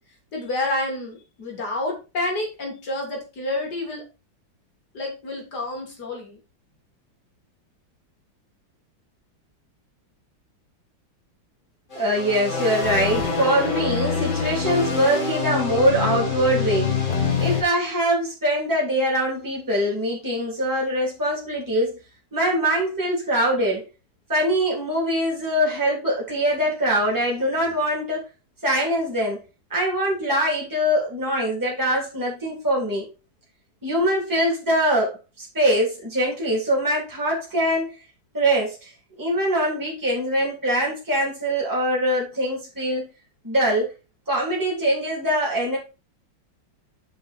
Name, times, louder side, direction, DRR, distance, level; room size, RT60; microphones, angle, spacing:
voice 1, 0.3-4.0 4.9-6.4, left 2 dB, 55° left, 1 dB, 3.4 m, -29 dB
sound 1, 11.9-17.6, left 5 dB, 25° left, 2.2 m, -25 dB
voice 2, 11.9-17.0 17.4-22.0 22.3-23.8 24.3-28.2 28.6-29.4 29.7-33.1 33.8-37.9 38.3-38.9 39.2-43.1 43.4-43.9 44.3-45.8, equal, 10° right, -3 dB, 3.2 m, -23 dB
8.0 x 5.4 x 4.3 m, 0.31 s
omnidirectional pair, 2.1 m